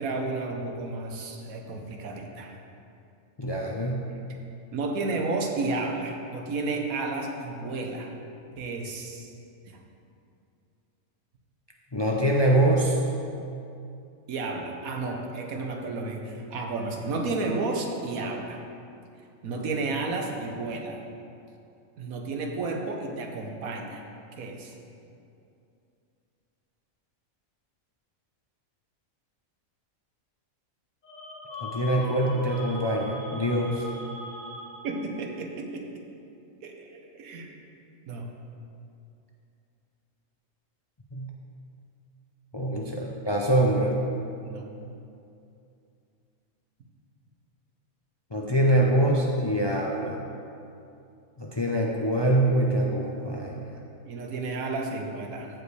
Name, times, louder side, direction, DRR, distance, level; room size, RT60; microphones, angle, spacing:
voice 1, 0.0-2.5 4.7-8.1 8.6-9.3 14.3-18.6 19.4-21.0 22.0-24.0 24.4-24.7 34.8-36.0 36.6-37.5 38.1-38.3 42.7-43.0 44.4-44.7 54.0-55.5, right 3 dB, 85° right, 2 dB, 1.3 m, -32 dB
voice 2, 3.4-4.1 11.9-13.0 31.6-33.8 41.1-41.3 42.5-43.9 48.3-50.2 51.4-53.7, right 1 dB, 30° left, -2 dB, 0.5 m, -24 dB
sound 1, 31.0-35.2, left 1 dB, 70° left, 2.1 m, -40 dB
15.0 x 5.2 x 3.3 m, 2.6 s
omnidirectional pair, 1.4 m